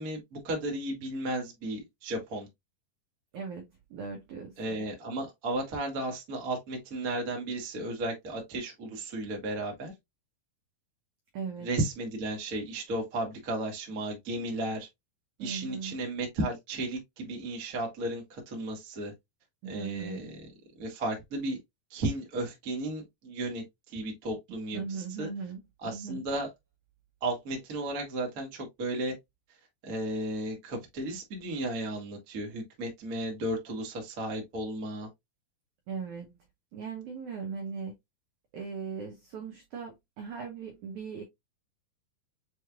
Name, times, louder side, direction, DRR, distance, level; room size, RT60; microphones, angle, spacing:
voice 1, 0.0-2.5 4.6-9.9 11.6-14.9 15.4-19.1 19.6-20.4 20.8-21.6 21.9-25.3 25.8-26.5 27.2-29.1 29.8-35.1, right 1 dB, 55° right, 0.9 m, -34 dB
voice 2, 3.3-4.9 11.3-11.7 15.4-15.9 19.6-20.4 24.7-26.2 35.9-36.4 36.7-37.9 38.5-41.2, right 5 dB, 80° right, 1.7 m, -39 dB
6.8 x 3.1 x 2.3 m
omnidirectional pair, 4.7 m